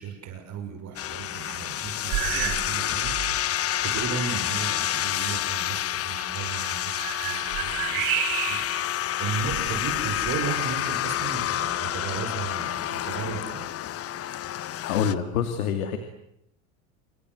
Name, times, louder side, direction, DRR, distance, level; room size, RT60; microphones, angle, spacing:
voice 1, 0.0-8.6 9.2-13.7, right 6 dB, 40° right, 5 dB, 6.4 m, -35 dB
sound 1, 1.0-15.1, left 12 dB, 35° left, 1.2 m, -29 dB
sound 2, 2.1-2.7 3.0-3.4 4.0-4.1 6.5-8.8 9.4-10.4, right 10 dB, 60° right, 5.4 m, -31 dB
voice 2, 14.8-16.0, left 8 dB, 90° left, 8 dB, 2.8 m, -26 dB
27.5 x 23.5 x 8.1 m, 0.80 s
supercardioid pair, 115°, 41 cm